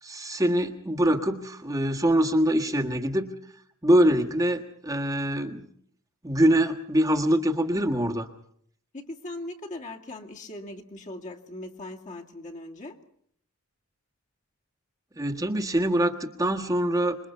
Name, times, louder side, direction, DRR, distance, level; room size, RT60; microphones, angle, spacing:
voice 1, 0.0-3.3 3.8-5.7 6.2-8.3 15.2-17.2, right 1 dB, 15° right, 1.5 m, -24 dB
voice 2, 8.9-13.0, left 1 dB, 35° left, 2.3 m, -39 dB
26.5 x 22.5 x 5.7 m
head